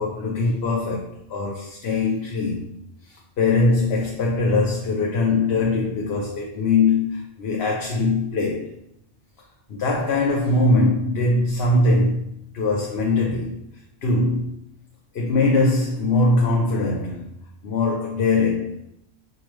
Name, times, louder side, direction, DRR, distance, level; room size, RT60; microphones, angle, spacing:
voice 1, 0.0-2.8 3.4-8.7 9.7-12.2 12.5-13.6 14.0-14.6 15.1-17.3 17.6-18.8, left 3 dB, 70° left, -1 dB, 0.9 m, -21 dB
5.8 x 2.2 x 3.1 m, 0.75 s
omnidirectional pair, 1.1 m